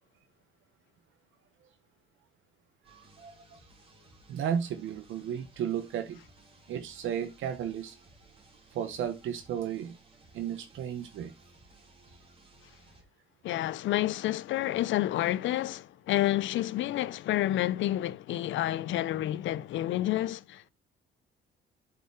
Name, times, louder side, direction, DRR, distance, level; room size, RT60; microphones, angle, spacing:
sound 1, 2.8-13.0, right 2 dB, 25° right, 2.3 m, -59 dB
voice 1, 2.9-3.6 4.3-6.2 6.7-8.0 8.7-10.0 10.3-11.3, right 9 dB, 75° right, 0.8 m, -34 dB
voice 2, 13.4-20.7, left 14 dB, 75° left, 0.5 m, -29 dB
8.0 x 4.9 x 3.1 m
cardioid pair, 90°, 20 cm